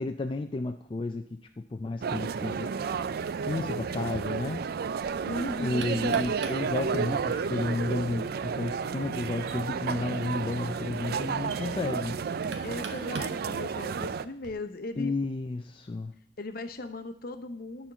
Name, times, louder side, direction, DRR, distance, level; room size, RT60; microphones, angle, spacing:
voice 1, 0.0-2.7 3.5-4.6 5.6-12.2 15.0-16.1, left 3 dB, 25° left, 6 dB, 0.4 m, -32 dB
sound 1, 2.0-14.3, right 6 dB, 55° right, 0.4 m, -32 dB
voice 2, 5.2-6.1 12.3-15.1 16.4-17.9, left 2 dB, 55° left, 9 dB, 0.8 m, -38 dB
Knock, 5.5-14.5, right 4 dB, 75° right, 1.1 m, -49 dB
11.5 x 4.4 x 6.7 m, 0.62 s
head